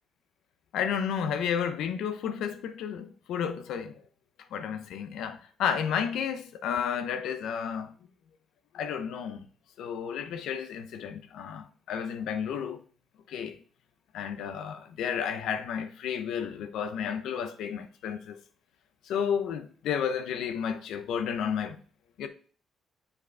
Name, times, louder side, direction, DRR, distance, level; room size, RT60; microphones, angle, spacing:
voice 1, 0.7-3.9 4.5-7.9 8.7-9.5 9.8-12.8 13.3-13.6 14.1-18.4 19.1-21.8 22.2-22.3, left 7 dB, 80° left, 0.9 m, -32 dB
6.9 x 5.0 x 3.4 m
cardioid pair, 90°, 0 cm